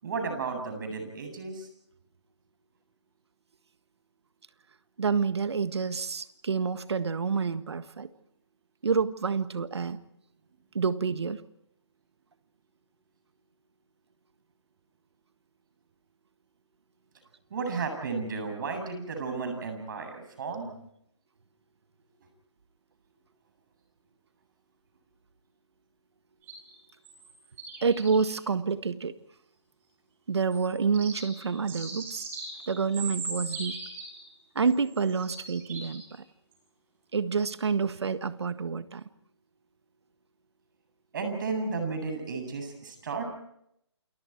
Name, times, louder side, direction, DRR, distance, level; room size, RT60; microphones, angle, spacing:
voice 1, 0.0-1.7 17.5-20.7 41.1-43.3, right 4 dB, 45° right, 6 dB, 7.9 m, -33 dB
voice 2, 5.0-8.1 8.8-10.0 10.7-11.4 27.8-29.1 30.3-32.3 32.7-33.8 34.5-36.2 37.1-39.0, right 5 dB, 65° right, 12 dB, 1.6 m, -28 dB
sound 1, 26.4-27.3 27.6-28.3 30.5-30.7 30.9-34.4 34.7-36.2 36.5-36.6, right 3 dB, 15° right, 7.3 m, -40 dB
28.5 x 27.5 x 4.6 m, 0.75 s
figure-of-eight pair, 155°, 15 cm